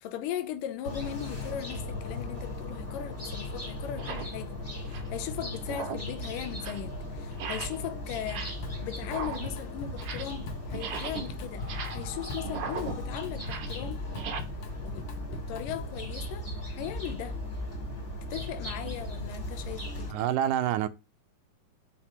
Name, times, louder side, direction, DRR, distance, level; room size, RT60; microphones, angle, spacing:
voice 1, 0.0-4.6 4.8-8.5 8.8-14.0 14.8-17.4 18.3-20.3, left 10 dB, 85° left, 2.4 m, -38 dB
sound 1, 0.8-20.1, left 1 dB, 20° left, 2.6 m, -37 dB
sound 2, 2.3-2.5 3.2-3.3 3.9-4.3 4.7-5.2 5.6-6.1 6.5-6.9 7.3-7.9 8.1-8.7 9.0-10.4 10.7-14.4, right 6 dB, 60° right, 1.6 m, -39 dB
Drum kit, 8.6-9.2 9.5-16.0, left 3 dB, 65° left, 1.5 m, -44 dB
voice 2, 20.1-20.9, right 11 dB, 80° right, 2.0 m, -27 dB
5.8 x 5.2 x 4.4 m
omnidirectional pair, 3.7 m